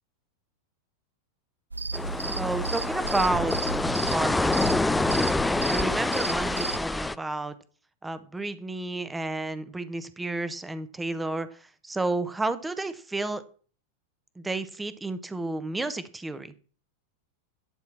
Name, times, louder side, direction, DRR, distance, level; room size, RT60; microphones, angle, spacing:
sound 1, 1.7-6.8, right 3 dB, 80° right, 0.5 m, -34 dB
sound 2, 1.9-7.2, left 2 dB, 5° left, 0.4 m, -26 dB
voice 1, 2.4-3.5 4.1-4.7 5.7-7.5 8.0-13.4 14.4-16.5, right 2 dB, 10° right, 12 dB, 1.0 m, -31 dB
12.0 x 4.4 x 7.3 m, 0.41 s
figure-of-eight pair, 90°, 0 cm